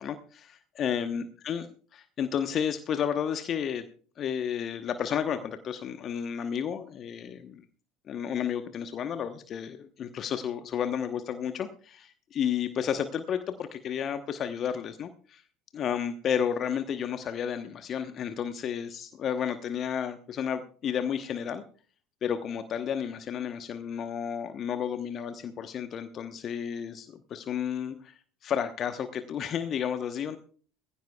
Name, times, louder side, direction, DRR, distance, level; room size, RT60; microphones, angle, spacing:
voice 1, 0.0-1.7 2.0-3.8 4.2-7.6 8.1-15.4 15.7-21.6 22.2-28.1 28.4-30.4, left 8 dB, 45° left, 9 dB, 0.9 m, -32 dB
20.0 x 15.5 x 2.3 m, 0.42 s
figure-of-eight pair, 65°, 0 cm